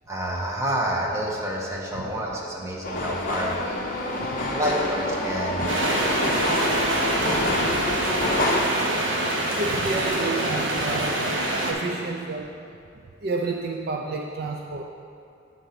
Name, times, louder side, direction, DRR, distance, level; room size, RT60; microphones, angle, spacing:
voice 1, 0.1-3.8 4.2-6.3, right 1 dB, 15° right, -4 dB, 0.9 m, -29 dB
sound 1, 2.8-8.6, left 1 dB, 40° left, 0.6 m, -27 dB
sound 2, 5.7-11.7, right 1 dB, 65° right, 0.9 m, -25 dB
voice 2, 9.6-11.2 11.7-12.5 12.9-14.8, right 3 dB, 50° right, 1 dB, 0.3 m, -30 dB
8.0 x 3.9 x 5.7 m, 2.5 s
head